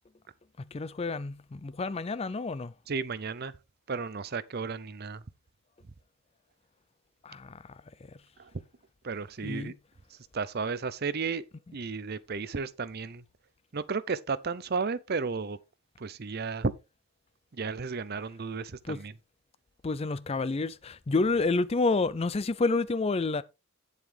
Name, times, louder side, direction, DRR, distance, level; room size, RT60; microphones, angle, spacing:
voice 1, 0.7-2.7 7.2-7.5 9.4-9.7 18.9-19.0 19.8-23.4, left 3 dB, 30° left, 0.4 m, -29 dB
voice 2, 2.9-3.6 3.9-5.2 8.4-8.5 9.0-9.7 10.3-11.4 11.7-13.2 13.7-15.6 16.0-16.7 17.5-19.1, right 4 dB, 45° right, 0.6 m, -33 dB
9.3 x 7.9 x 3.4 m
head